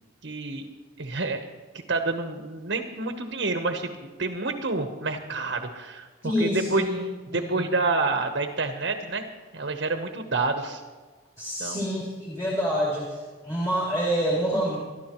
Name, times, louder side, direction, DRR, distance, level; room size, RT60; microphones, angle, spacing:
voice 1, 0.2-0.7 1.0-1.4 1.9-6.8 7.3-9.2 9.5-10.8 11.6-11.8, right 3 dB, 55° right, 5 dB, 1.0 m, -28 dB
voice 2, 6.2-7.0 7.3-7.7 11.4-14.8, equal, 15° left, -5 dB, 2.5 m, -27 dB
23.0 x 12.5 x 3.0 m, 1.4 s
head